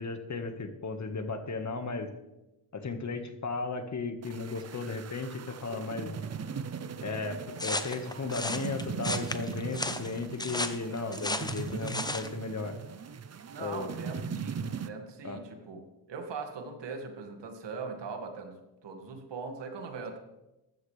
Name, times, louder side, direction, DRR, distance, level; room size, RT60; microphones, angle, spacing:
voice 1, 0.0-2.1 2.7-6.1 7.0-12.7 13.6-13.9 15.2-15.4, left 3 dB, 40° left, 7 dB, 1.7 m, -35 dB
sound 1, 4.2-14.9, right 6 dB, 35° right, 0.7 m, -39 dB
sound 2, 7.6-12.3, left 2 dB, 10° left, 0.9 m, -34 dB
voice 2, 13.5-20.2, right 4 dB, 75° right, 3 dB, 2.3 m, -41 dB
15.0 x 12.5 x 3.4 m, 0.99 s
cardioid pair, 80°, 43 cm